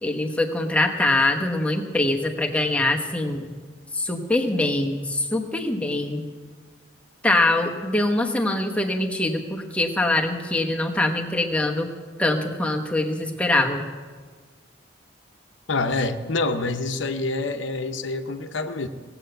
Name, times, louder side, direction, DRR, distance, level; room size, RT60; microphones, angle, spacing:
voice 1, 0.0-3.4 3.9-6.2 7.2-11.9 12.2-13.9, left 2 dB, 5° left, 2 dB, 1.0 m, -23 dB
voice 2, 15.7-18.9, left 3 dB, 80° left, 8 dB, 0.9 m, -26 dB
18.0 x 8.0 x 7.9 m, 1.5 s
head